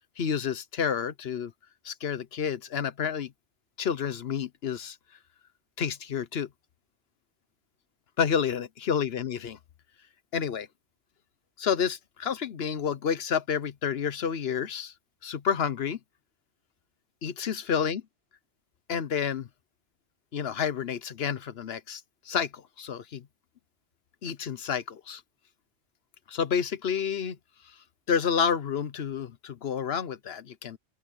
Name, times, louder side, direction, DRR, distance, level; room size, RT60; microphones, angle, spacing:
voice 1, 0.2-1.5 1.8-3.3 3.8-5.0 5.8-6.5 8.2-9.6 10.3-10.7 11.6-14.9 15.2-16.0 17.2-18.0 18.9-19.5 20.3-22.0 22.3-23.3 24.2-25.2 26.3-27.4 28.1-30.8, left 7 dB, 60° left, 1.0 m, -29 dB
open air
omnidirectional pair, 1.2 m